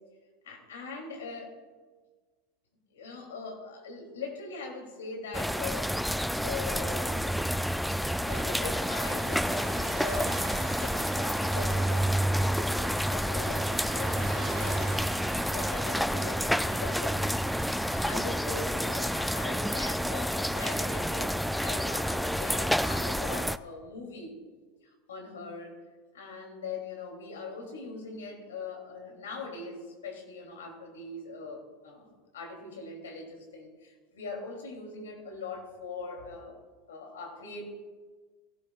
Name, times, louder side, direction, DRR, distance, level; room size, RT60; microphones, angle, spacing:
voice 1, 0.4-1.6 2.9-7.5 8.3-10.5 10.7-21.3 21.6-24.4 25.1-25.8 26.1-36.6 36.9-37.6, left 4 dB, 90° left, 1 dB, 2.9 m, -41 dB
sound 1, 5.3-23.6, equal, ahead, 0.4 m, -29 dB
sound 2, 8.3-15.9, right 10 dB, 80° right, 0.5 m, -47 dB
17.5 x 12.5 x 2.4 m, 1.4 s
hypercardioid pair, 100°, 0 cm